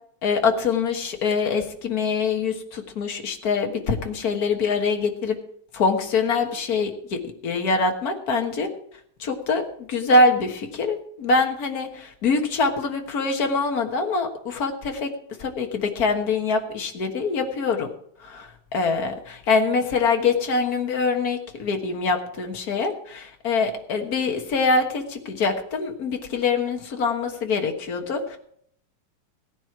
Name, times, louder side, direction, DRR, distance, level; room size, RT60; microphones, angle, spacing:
voice 1, 0.2-5.4 5.7-8.7 9.2-15.1 15.4-17.9 18.2-28.4, left 4 dB, 50° left, 4 dB, 1.1 m, -24 dB
16.5 x 10.5 x 4.6 m, 0.66 s
omnidirectional pair, 3.7 m